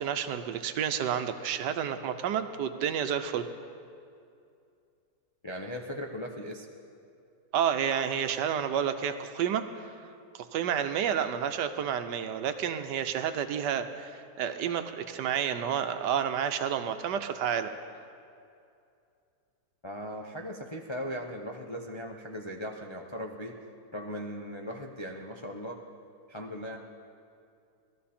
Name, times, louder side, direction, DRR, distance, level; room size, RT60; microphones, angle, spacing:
voice 1, 0.0-3.5 7.5-9.9 10.3-17.7, right 8 dB, 75° right, 9 dB, 1.3 m, -30 dB
voice 2, 5.4-6.7 19.8-23.6 23.9-25.8 26.3-26.8, equal, 50° left, 1 dB, 0.3 m, -38 dB
18.0 x 13.0 x 4.3 m, 2.5 s
omnidirectional pair, 1.9 m